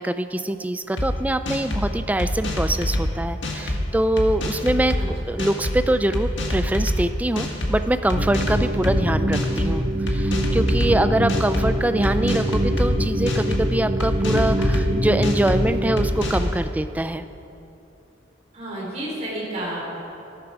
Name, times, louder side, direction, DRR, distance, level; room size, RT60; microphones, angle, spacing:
voice 1, 0.0-5.0 5.3-17.2, right 1 dB, 10° right, 10 dB, 0.3 m, -24 dB
sound 1, 1.0-1.1 1.5-1.8 2.2-3.0 3.4-3.8 4.2-5.0 5.4-5.8 6.1-7.0 7.4-7.7 8.1-8.9 9.3-9.7 10.1-10.9 11.3-11.7 12.0-12.9 13.3-13.6 14.0-14.8 15.2-15.6 16.0-16.5, left 1 dB, 75° left, 1.6 m, -25 dB
sound 2, 8.1-16.1, equal, 90° right, 3.3 m, -24 dB
voice 2, 18.5-20.0, right 1 dB, 35° right, -5 dB, 3.8 m, -31 dB
13.5 x 12.0 x 4.8 m, 2.9 s
head